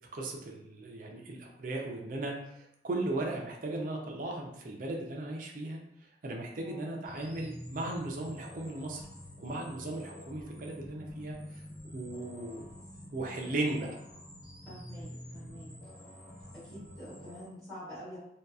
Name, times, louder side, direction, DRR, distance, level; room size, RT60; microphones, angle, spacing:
voice 1, 0.1-5.8 6.2-9.0 9.4-11.6 11.9-12.6 13.1-13.9, right 2 dB, 45° right, 0 dB, 0.4 m, -36 dB
voice 2, 6.6-6.9 14.6-15.7 16.5-18.2, equal, ahead, -13 dB, 1.5 m, -47 dB
sound 1, 7.0-17.5, equal, 20° left, 0.8 m, -48 dB
2.8 x 2.2 x 2.3 m, 0.79 s
head